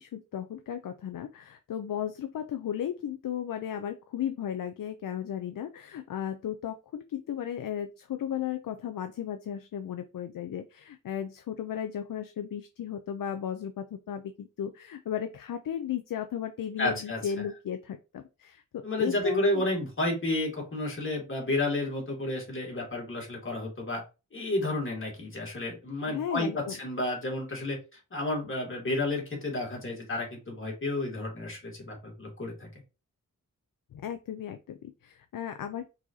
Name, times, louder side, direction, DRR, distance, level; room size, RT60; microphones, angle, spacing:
voice 1, 0.0-19.7 26.1-26.8 33.9-35.8, left 9 dB, 90° left, 7 dB, 0.5 m, -35 dB
voice 2, 16.8-17.2 18.8-24.0 24.3-27.8 28.1-32.7, left 2 dB, 40° left, -1 dB, 2.3 m, -31 dB
4.7 x 4.1 x 2.7 m, 0.29 s
wide cardioid pair, 110°, 32 cm